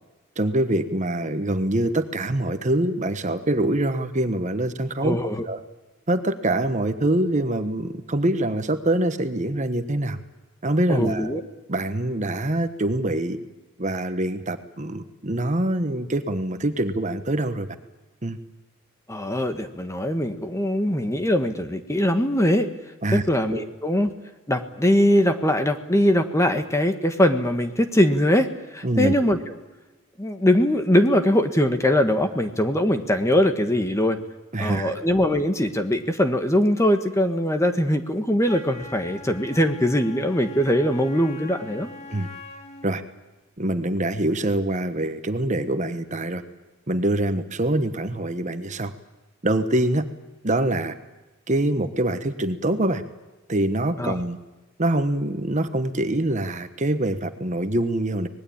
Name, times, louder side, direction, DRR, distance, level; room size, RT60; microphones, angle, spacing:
voice 1, 0.4-5.2 5.5-5.6 6.1-10.2 10.6-11.4 11.7-13.4 13.8-17.7 18.2-18.4 23.0-23.2 23.5-23.6 28.8-29.1 34.5-34.9 42.1-42.3 42.8-43.0 43.6-46.4 46.9-48.9 49.4-50.0 50.4-50.9 51.5-53.0 53.5-54.4 54.8-58.3, right 1 dB, 35° right, 9 dB, 1.3 m, -24 dB
voice 2, 5.0-5.5 10.9-11.4 19.1-22.7 23.1-24.1 24.5-28.5 28.7-29.4 30.2-34.2 34.6-41.9 54.0-54.2, left 1 dB, 15° left, 8 dB, 1.5 m, -21 dB
Wind instrument woodwind instrument, 38.4-43.0, left 2 dB, 30° left, 2.6 m, -42 dB
25.5 x 20.0 x 8.7 m, 1.1 s
head